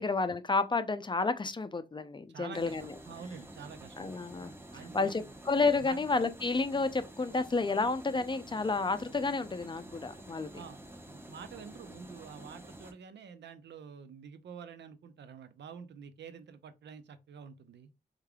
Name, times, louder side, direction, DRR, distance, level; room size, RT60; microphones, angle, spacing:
voice 1, 0.0-2.8 4.0-4.5 4.9-10.5, left 3 dB, 25° left, 0.4 m, -30 dB
voice 2, 2.3-4.1 4.7-5.2 5.8-6.0 10.5-10.8 11.1-17.9, right 6 dB, 85° right, 0.5 m, -48 dB
sound 1, 2.5-12.9, right 1 dB, 10° right, 0.8 m, -50 dB
3.6 x 3.3 x 2.2 m
cardioid pair, 70°, 18 cm